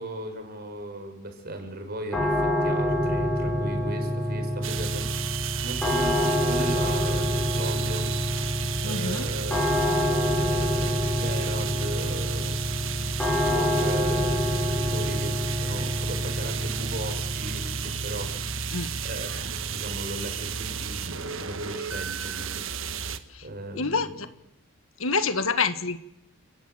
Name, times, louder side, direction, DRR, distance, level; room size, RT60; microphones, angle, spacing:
voice 1, 0.0-5.1 5.6-8.5 8.8-13.0 13.3-23.0 23.4-24.3, right 1 dB, 45° right, 5 dB, 5.2 m, -37 dB
sound 1, 2.1-21.0, equal, 5° left, 5.9 m, -27 dB
sound 2, 4.6-23.2, right 6 dB, 65° right, 1.4 m, -33 dB
voice 2, 8.8-9.3 18.7-18.9 23.7-24.1 25.0-26.0, left 4 dB, 75° left, 11 dB, 1.6 m, -26 dB
29.0 x 18.0 x 8.0 m, 0.84 s
head